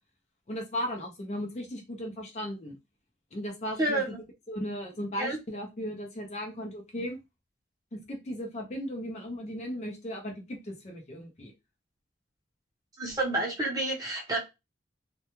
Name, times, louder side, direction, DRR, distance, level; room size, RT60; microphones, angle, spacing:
voice 1, 0.5-2.8 3.3-4.0 4.5-7.2 7.9-11.5, equal, 35° left, 2 dB, 0.5 m, -36 dB
voice 2, 3.8-4.2 5.2-5.4 13.0-14.4, right 2 dB, 20° right, -2 dB, 0.7 m, -29 dB
2.2 x 2.2 x 2.9 m, 0.24 s
head